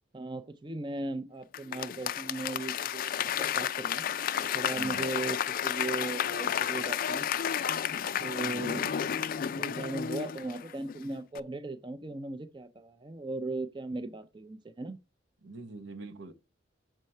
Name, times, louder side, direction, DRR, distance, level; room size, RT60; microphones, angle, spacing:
voice 1, 0.1-4.0 4.5-7.3 8.2-8.9 9.6-15.0, right 2 dB, 25° right, 0.5 m, -37 dB
Applause / Crowd, 1.5-11.0 11.3-11.4, left 9 dB, 45° left, 0.3 m, -32 dB
voice 2, 4.7-5.1 8.1-9.0 15.4-16.3, right 3 dB, 75° right, 0.9 m, -45 dB
6.4 x 4.5 x 5.4 m
head